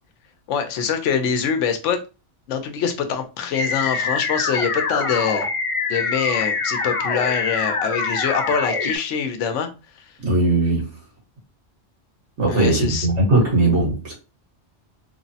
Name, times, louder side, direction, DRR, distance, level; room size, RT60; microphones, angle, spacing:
voice 1, 0.5-2.0 2.5-5.5 5.9-9.7 12.5-13.1, left 7 dB, 90° left, 0.9 m, -24 dB
sound 1, 3.5-9.0, left 4 dB, 60° left, 0.3 m, -24 dB
voice 2, 10.2-10.9 12.4-14.1, right 2 dB, 75° right, 1.6 m, -19 dB
3.1 x 2.0 x 2.6 m
omnidirectional pair, 1.2 m